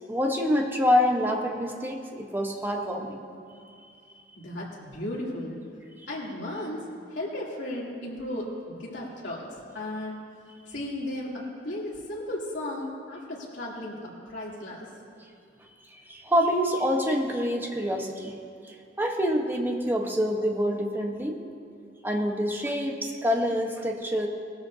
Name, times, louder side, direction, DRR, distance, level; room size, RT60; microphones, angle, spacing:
voice 1, 0.1-3.2 16.1-18.3 19.0-21.4 22.0-24.3, equal, 10° right, 1 dB, 1.2 m, -26 dB
voice 2, 4.4-5.6 6.1-6.8 7.1-9.5 9.7-10.2 10.7-14.0 14.3-14.9, left 1 dB, 75° left, -5 dB, 3.1 m, -35 dB
19.5 x 12.5 x 2.8 m, 2.4 s
head